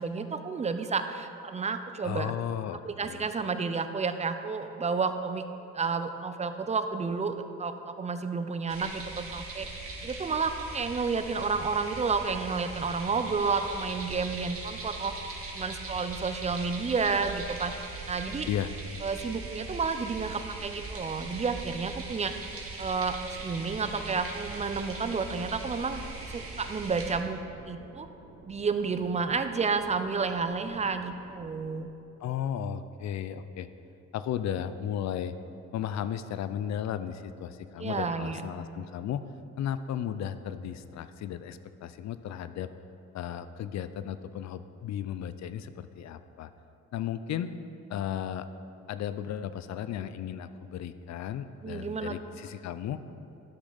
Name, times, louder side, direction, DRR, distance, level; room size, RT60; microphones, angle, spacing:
voice 1, 0.0-2.3 2.8-5.4 5.7-9.7 10.0-15.1 15.5-17.7 18.1-18.5 19.0-22.3 22.8-26.0 26.3-28.1 28.4-31.9 37.8-38.4 51.6-52.2, right 5 dB, 25° right, 9 dB, 0.5 m, -31 dB
voice 2, 2.0-3.3 18.5-18.7 32.2-33.7 34.1-35.3 35.7-39.2 39.6-42.7 43.1-46.5 46.9-47.5 47.9-48.5 48.9-53.0, left 9 dB, 65° left, 12 dB, 0.5 m, -35 dB
Hydrophone under North Saskatchewan River Edmonton, 8.7-27.2, right 3 dB, 50° right, 1.6 m, -40 dB
sound 1, 23.3-31.9, right 3 dB, 70° right, 1.3 m, -52 dB
11.5 x 6.2 x 4.0 m, 2.7 s
cardioid pair, 90°, 30 cm